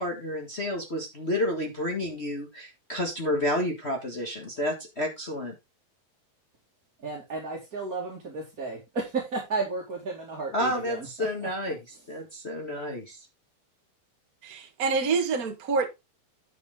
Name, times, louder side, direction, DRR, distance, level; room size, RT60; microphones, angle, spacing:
voice 1, 0.0-5.5 10.5-11.8 12.1-13.3, left 1 dB, 65° left, 0.6 m, -30 dB
voice 2, 7.0-11.5, right 3 dB, 30° right, 2.2 m, -33 dB
voice 3, 14.4-15.9, right 4 dB, 65° right, 0.8 m, -26 dB
10.0 x 6.7 x 3.7 m
omnidirectional pair, 4.3 m